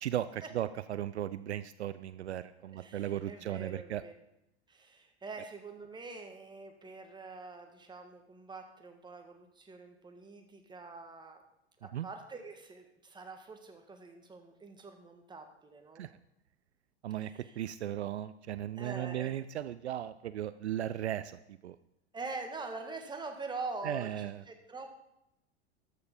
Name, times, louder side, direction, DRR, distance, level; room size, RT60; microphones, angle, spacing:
voice 1, 0.0-4.0 11.9-12.1 16.0-16.1 17.0-21.8 23.8-24.4, right 11 dB, 75° right, 14 dB, 0.5 m, -36 dB
voice 2, 2.6-4.1 4.7-11.4 11.8-16.1 17.2-17.6 18.8-19.3 22.1-24.9, right 3 dB, 15° right, 5 dB, 1.6 m, -45 dB
13.0 x 6.7 x 5.4 m, 0.87 s
figure-of-eight pair, 85°, 34 cm